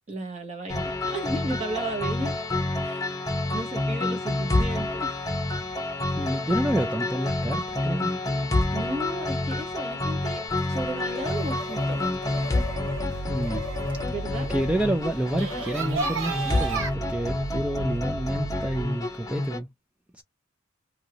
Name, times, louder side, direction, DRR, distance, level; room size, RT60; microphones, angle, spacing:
voice 1, 0.1-2.3 2.8-3.1 3.5-5.1 8.7-12.1 14.1-14.5, right 2 dB, 35° right, 1.1 m, -34 dB
sound 1, 0.7-19.6, left 2 dB, 15° left, 0.8 m, -28 dB
voice 2, 6.1-8.1 13.3-13.7 14.5-19.7 20.1-20.2, right 1 dB, 5° right, 0.3 m, -29 dB
sound 2, 10.5-16.9, right 3 dB, 70° right, 1.2 m, -35 dB
2.9 x 2.8 x 2.8 m
head